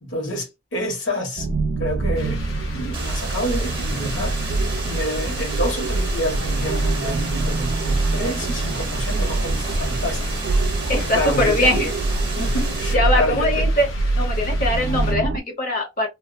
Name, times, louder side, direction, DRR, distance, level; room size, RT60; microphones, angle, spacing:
voice 1, 0.0-1.5 1.8-2.4 2.7-4.4 4.8-10.2 10.7-11.9 12.2-13.7, equal, 70° left, 1.4 m, -28 dB
sound 1, 1.4-15.4, right 2 dB, 75° right, 0.4 m, -24 dB
sound 2, 2.2-15.1, left 3 dB, 85° left, 1.0 m, -38 dB
sound 3, 2.9-12.9, right 4 dB, 25° right, 0.8 m, -33 dB
voice 2, 10.9-11.9 12.9-13.9 14.2-16.1, left 1 dB, 45° left, 0.8 m, -22 dB
2.6 x 2.0 x 2.5 m
head